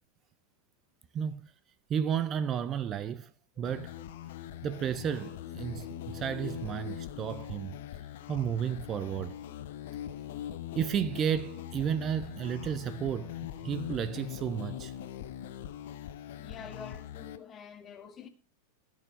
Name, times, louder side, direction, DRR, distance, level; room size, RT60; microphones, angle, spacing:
voice 1, 1.1-1.5 1.9-3.3 3.6-4.0 4.6-7.7 8.3-9.4 10.8-14.9, right 8 dB, 30° right, 0.6 m, -32 dB
sound 1, 3.6-17.4, left 11 dB, 55° left, 0.9 m, -42 dB
voice 2, 16.4-18.3, left 7 dB, 25° left, 1.4 m, -47 dB
15.5 x 6.5 x 5.1 m
figure-of-eight pair, 90°, 0 cm